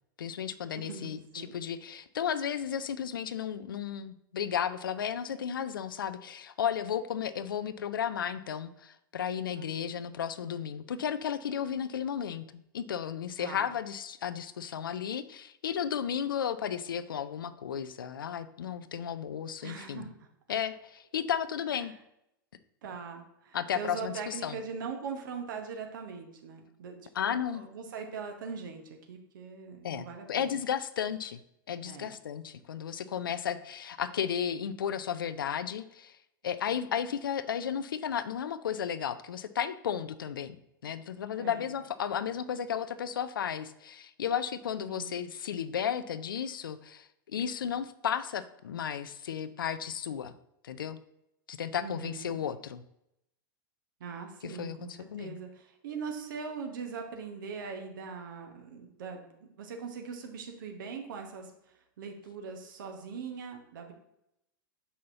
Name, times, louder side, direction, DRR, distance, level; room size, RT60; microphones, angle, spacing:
voice 1, 0.2-12.4 12.7-20.1 20.5-21.9 23.5-24.6 27.1-27.6 29.8-31.4 31.7-36.2 36.4-50.3 50.6-51.0 51.5-52.8 54.4-54.8 55.1-55.4, left 8 dB, 70° left, 14 dB, 0.4 m, -34 dB
voice 2, 0.8-1.6 9.5-9.7 13.4-13.7 19.6-20.3 21.8-21.9 22.8-30.5 31.8-32.2 41.3-41.7 44.9-45.1 51.8-52.4 54.0-63.9, right 5 dB, 60° right, 4 dB, 1.3 m, -41 dB
7.3 x 5.5 x 2.8 m, 0.81 s
figure-of-eight pair, 90°, 12 cm